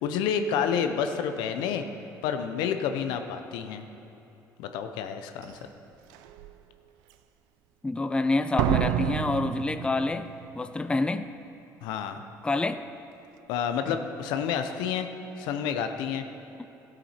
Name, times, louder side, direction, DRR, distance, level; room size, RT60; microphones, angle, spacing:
voice 1, 0.0-1.8 2.2-3.8 4.6-5.6 11.8-12.2 13.5-15.1 15.4-16.2, left 7 dB, 85° left, 7 dB, 0.7 m, -29 dB
Slam, 5.4-5.5 6.1-6.5 8.6-10.5 10.7-10.8, right 12 dB, 90° right, 0.4 m, -28 dB
voice 2, 7.8-11.3 12.4-12.8 13.9-14.0, left 2 dB, 15° left, 10 dB, 0.4 m, -27 dB
14.5 x 7.9 x 4.4 m, 2.9 s
supercardioid pair, 80°, 7 cm